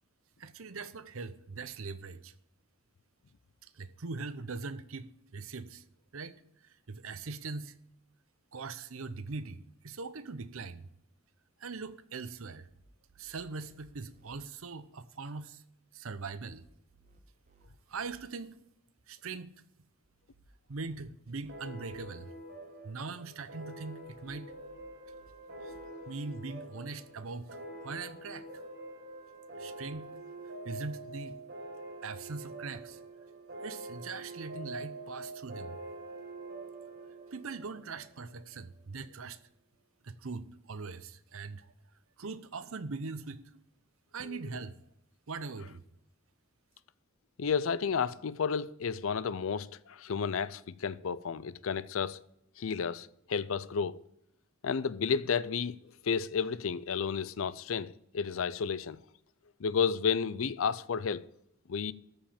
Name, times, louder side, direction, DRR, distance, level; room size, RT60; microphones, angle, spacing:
voice 1, 0.4-2.3 3.6-5.8 6.1-7.8 8.5-10.9 11.6-12.7 13.2-15.6 15.9-16.7 17.9-18.6 19.1-19.5 20.7-22.3 22.8-24.5 25.6-25.7 26.1-27.5 27.8-28.5 29.6-30.0 30.4-31.4 32.0-33.0 33.6-35.8 37.3-39.4 40.0-41.7 42.2-43.6 44.1-44.8 45.3-45.8, right 4 dB, 75° right, 0.8 m, -41 dB
sound 1, 12.4-14.4 16.2-18.2 20.0-22.0 23.9-25.8, right 2 dB, 35° right, 1.3 m, -64 dB
sound 2, 21.5-38.6, right 2 dB, 55° right, 4.4 m, -46 dB
voice 2, 47.4-52.2 52.6-54.0 54.6-55.8 56.0-59.0 59.6-61.3 61.7-61.9, left 6 dB, 70° left, 0.5 m, -32 dB
13.5 x 5.1 x 8.7 m
head